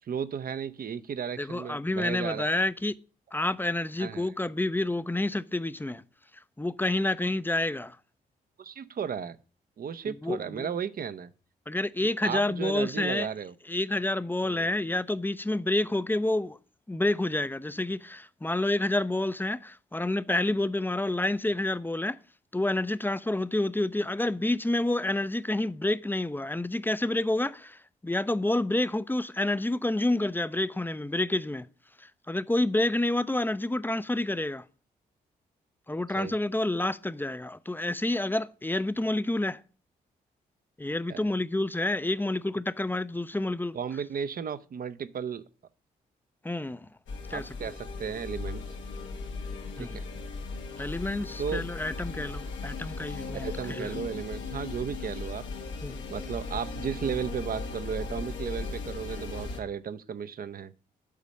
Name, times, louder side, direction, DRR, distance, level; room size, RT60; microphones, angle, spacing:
voice 1, 0.0-2.5 4.0-4.3 8.6-9.4 9.8-11.3 12.0-13.5 14.4-14.7 36.1-36.4 41.1-41.3 43.7-45.4 47.3-48.6 49.8-50.0 51.4-51.6 53.4-55.4 56.1-60.7, right 7 dB, 50° right, 0.7 m, -34 dB
voice 2, 1.4-2.9 3.3-6.0 6.6-8.0 10.1-10.7 11.7-13.3 13.7-16.6 16.9-22.1 22.5-27.8 28.0-31.6 32.3-34.6 35.9-39.6 40.8-43.8 46.4-46.9 47.3-47.4 49.8-49.9 50.8-53.9 55.8-56.0, left 2 dB, 10° left, 0.5 m, -29 dB
sound 1, 47.1-59.6, left 4 dB, 75° left, 1.3 m, -37 dB
8.4 x 4.1 x 6.4 m
hypercardioid pair, 45°, 19 cm